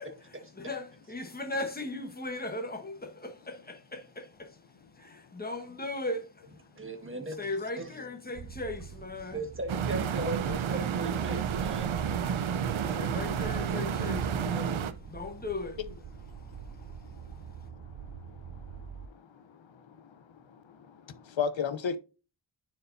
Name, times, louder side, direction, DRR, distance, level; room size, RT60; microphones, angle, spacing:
voice 1, 0.0-6.9 7.4-9.4 12.4-15.8 16.3-17.7, left 2 dB, 20° left, 1.4 m, -39 dB
voice 2, 6.7-7.4 7.8-7.9 9.3-13.2, right 2 dB, 25° right, 1.7 m, -38 dB
sound 1, 8.3-19.1, right 7 dB, 45° right, 0.5 m, -47 dB
sound 2, 9.7-14.9, right 7 dB, 90° right, 0.8 m, -30 dB
voice 3, 16.8-17.4 17.9-18.7 20.0-20.2 20.7-22.0, left 6 dB, 75° left, 0.9 m, -36 dB
10.0 x 4.7 x 2.7 m
wide cardioid pair, 115°, 46 cm